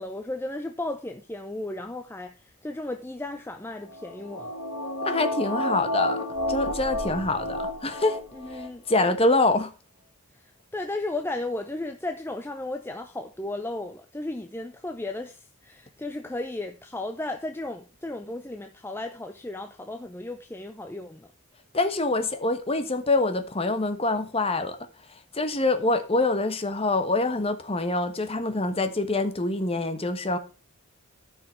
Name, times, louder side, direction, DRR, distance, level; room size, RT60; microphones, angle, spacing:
voice 1, 0.0-2.3 2.6-4.5 8.3-8.8 10.7-21.3, left 2 dB, 10° left, 0.6 m, -34 dB
sound 1, 3.9-8.7 9.0-9.1, left 1 dB, 65° left, 2.2 m, -31 dB
voice 2, 5.0-8.2 8.9-9.7 21.7-24.8 25.3-30.4, left 2 dB, 25° left, 1.1 m, -25 dB
sound 2, 6.3-8.8, equal, 65° right, 5.5 m, -43 dB
13.5 x 5.6 x 4.5 m
head